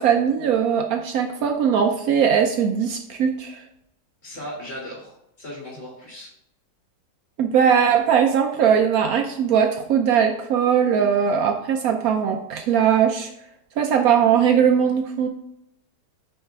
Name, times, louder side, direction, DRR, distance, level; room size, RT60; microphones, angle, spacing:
voice 1, 0.0-3.6 7.4-13.3 13.8-15.3, right 7 dB, 70° right, 5 dB, 1.0 m, -20 dB
voice 2, 4.2-6.3, equal, 25° left, -5 dB, 2.4 m, -37 dB
8.5 x 3.3 x 3.5 m, 0.78 s
omnidirectional pair, 1.7 m